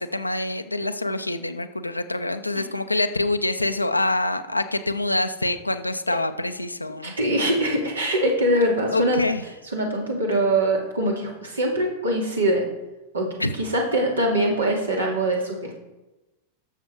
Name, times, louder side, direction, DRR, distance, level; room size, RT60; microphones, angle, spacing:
voice 1, 0.0-7.1 8.9-9.4 13.4-13.5, left 2 dB, 85° left, 9 dB, 0.7 m, -25 dB
voice 2, 7.0-9.2 9.7-12.6 13.1-15.8, right 1 dB, 75° right, 0 dB, 2.5 m, -23 dB
12.5 x 7.1 x 4.7 m, 1.1 s
figure-of-eight pair, 90°, 0 cm